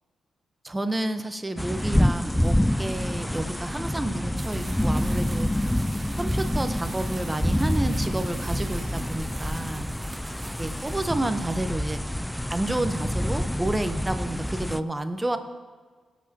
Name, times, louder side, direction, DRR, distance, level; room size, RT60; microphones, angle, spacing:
voice 1, 0.6-5.5 6.2-9.9 10.6-12.0 12.5-15.4, right 1 dB, 20° right, 8 dB, 1.0 m, -30 dB
sound 1, 1.6-14.8, equal, 5° left, 0.3 m, -27 dB
sound 2, 1.6-9.0, right 3 dB, 60° right, 1.6 m, -53 dB
sound 3, 4.4-11.3, right 3 dB, 40° right, 1.2 m, -44 dB
17.5 x 7.3 x 2.9 m, 1.5 s
supercardioid pair, 55°, 0 cm